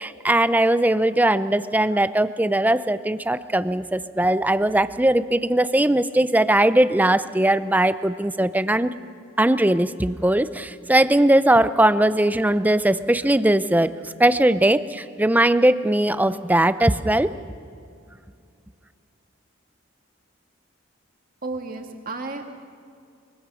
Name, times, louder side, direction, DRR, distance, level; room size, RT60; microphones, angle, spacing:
voice 1, 0.0-8.9 9.4-17.3, right 1 dB, 10° right, 13 dB, 0.5 m, -20 dB
voice 2, 21.4-22.4, right 3 dB, 45° right, 4 dB, 2.1 m, -32 dB
23.5 x 23.5 x 6.3 m, 2.4 s
head